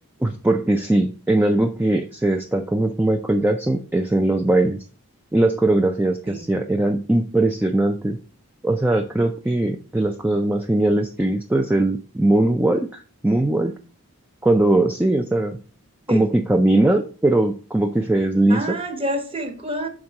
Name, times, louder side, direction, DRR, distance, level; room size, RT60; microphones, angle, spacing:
voice 1, 0.2-4.8 5.3-8.2 8.6-13.7 14.4-15.6 16.1-18.8, right 1 dB, 10° right, 0.3 m, -20 dB
voice 2, 18.5-19.9, right 1 dB, 25° right, 1.0 m, -27 dB
6.0 x 3.7 x 5.3 m
head